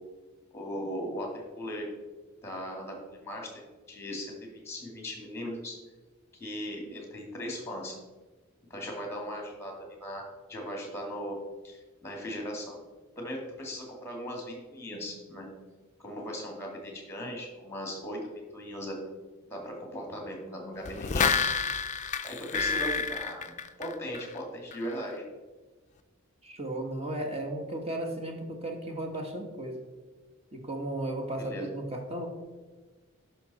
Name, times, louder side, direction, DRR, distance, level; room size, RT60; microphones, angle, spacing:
voice 1, 0.5-1.9 2.4-3.5 3.9-5.7 6.3-8.0 8.7-9.7 10.0-10.2 10.5-11.4 11.6-12.8 13.2-15.5 16.0-19.1 19.4-21.3 22.2-23.4 23.8-25.2 31.4-31.7, equal, 10° left, 0 dB, 2.2 m, -38 dB
sound 1, 20.8-24.4 24.7-24.8, left 5 dB, 35° left, 0.4 m, -29 dB
voice 2, 26.4-29.8 30.5-32.3, right 1 dB, 25° right, 2 dB, 1.3 m, -35 dB
10.5 x 6.0 x 4.1 m, 1.3 s
head